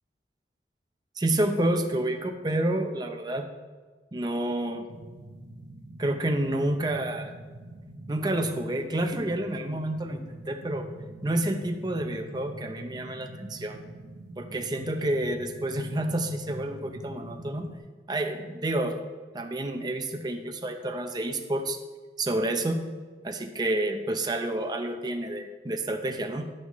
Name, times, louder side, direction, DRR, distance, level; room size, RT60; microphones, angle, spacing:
voice 1, 1.2-3.5 4.1-4.9 6.0-7.3 8.1-10.9 11.2-13.8 14.4-17.7 18.1-19.0 19.3-21.8 22.2-22.9 23.2-26.4, right 1 dB, 25° right, 5 dB, 0.6 m, -29 dB
sound 1, 4.9-17.8, right 1 dB, 70° right, 1.0 m, -44 dB
11.0 x 7.6 x 3.1 m, 1.4 s
head